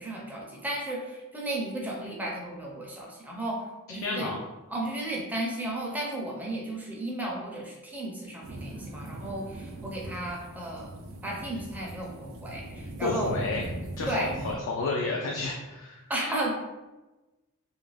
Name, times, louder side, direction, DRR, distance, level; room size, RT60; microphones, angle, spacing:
voice 1, 0.0-4.3 4.7-10.9 11.2-13.3 14.1-14.3 16.1-16.5, right 1 dB, 10° right, -3 dB, 0.5 m, -34 dB
voice 2, 3.9-4.4 13.0-13.7 14.0-16.1, left 3 dB, 60° left, -1 dB, 0.4 m, -31 dB
sound 1, 8.4-14.6, right 1 dB, 65° right, 0.4 m, -40 dB
2.5 x 2.1 x 3.2 m, 1.1 s
head